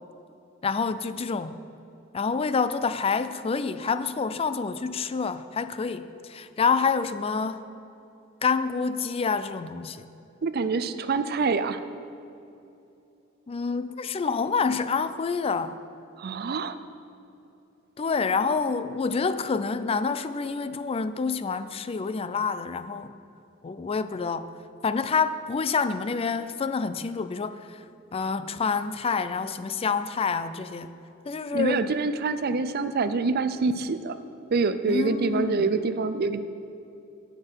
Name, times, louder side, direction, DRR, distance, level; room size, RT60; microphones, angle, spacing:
voice 1, 0.6-1.6 2.1-7.6 8.4-10.1 13.5-15.8 18.0-23.1 23.6-24.5 24.8-27.8 28.1-30.9 31.3-31.9 34.9-35.7, left 5 dB, 30° left, 12 dB, 0.4 m, -27 dB
voice 2, 10.4-11.8 16.2-16.8 31.5-34.2 34.5-36.4, right 4 dB, 50° right, 11 dB, 0.5 m, -26 dB
17.5 x 6.7 x 4.6 m, 2.7 s
head